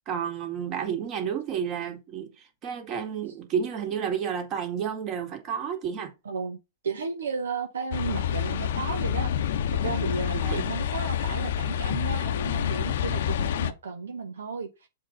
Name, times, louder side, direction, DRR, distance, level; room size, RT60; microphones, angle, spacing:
voice 1, 0.1-6.1 10.3-10.7, right 7 dB, 35° right, 2.1 m, -31 dB
voice 2, 6.2-6.6 6.8-14.9, right 5 dB, 75° right, 0.9 m, -34 dB
sound 1, 7.9-13.7, left 9 dB, 60° left, 0.7 m, -28 dB
7.2 x 3.9 x 5.2 m
figure-of-eight pair, 105°, 0 cm